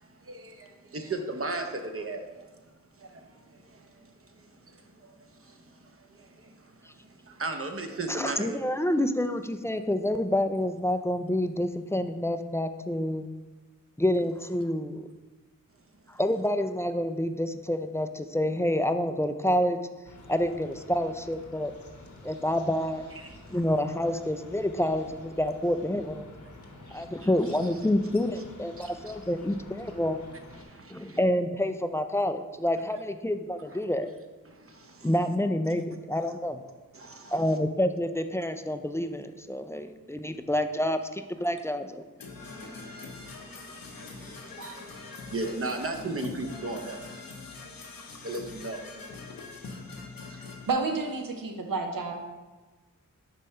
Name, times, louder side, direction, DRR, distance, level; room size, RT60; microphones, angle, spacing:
voice 1, 0.0-2.4 3.0-8.6 23.2-23.3 26.7-27.3 28.8-28.9 30.6-31.2 34.5-35.1 36.9-37.3 42.4-47.0 48.2-48.8 50.3-50.4, right 2 dB, 40° right, 5 dB, 0.7 m, -38 dB
voice 2, 8.1-13.3 14.0-15.1 16.1-19.8 20.3-21.7 22.2-23.1 23.5-26.2 26.9-30.2 30.9-34.1 35.0-36.6 37.3-42.0, left 1 dB, 10° left, 8 dB, 0.3 m, -28 dB
sound 1, 20.0-30.7, left 2 dB, 60° left, 1.0 m, -49 dB
Percussion / Brass instrument, 42.2-50.7, left 4 dB, 80° left, 0.9 m, -43 dB
voice 3, 50.7-52.1, right 4 dB, 75° right, 3 dB, 0.8 m, -30 dB
5.3 x 3.2 x 5.5 m, 1.2 s
cardioid pair, 40°, 34 cm